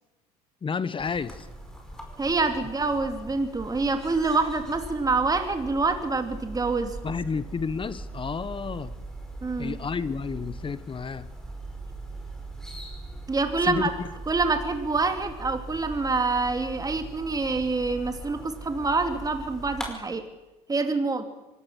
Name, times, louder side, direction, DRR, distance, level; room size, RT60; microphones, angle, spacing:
voice 1, 0.6-1.5 7.0-8.9 9.6-11.3 13.6-13.9, left 5 dB, 25° left, 16 dB, 1.2 m, -31 dB
sound 1, 1.0-19.9, right 2 dB, 5° left, 5.3 m, -40 dB
voice 2, 2.2-7.0 9.4-9.8 13.3-13.9 14.3-20.2 20.7-21.2, right 3 dB, 20° right, 6 dB, 2.7 m, -26 dB
24.5 x 18.5 x 6.4 m, 1.1 s
hypercardioid pair, 70°, 19 cm